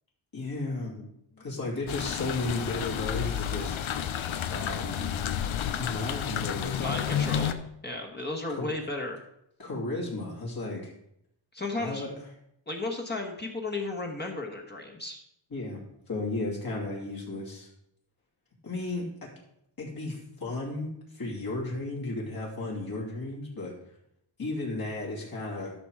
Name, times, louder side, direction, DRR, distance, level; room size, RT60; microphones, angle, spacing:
voice 1, 0.3-1.1 1.3-3.8 4.5-7.5 8.5-8.7 9.6-10.9 11.8-12.1 15.5-15.8 16.1-17.7 18.6-19.3 19.8-23.7 24.4-25.7, left 2 dB, 50° left, -4 dB, 3.0 m, -34 dB
sound 1, 1.9-7.5, left 9 dB, 85° left, 0.8 m, -31 dB
voice 2, 6.8-7.5 7.8-9.3 11.5-12.1 12.7-15.2, left 2 dB, 20° left, 1 dB, 1.4 m, -34 dB
12.5 x 6.1 x 4.9 m, 0.76 s
wide cardioid pair, 115°, 47 cm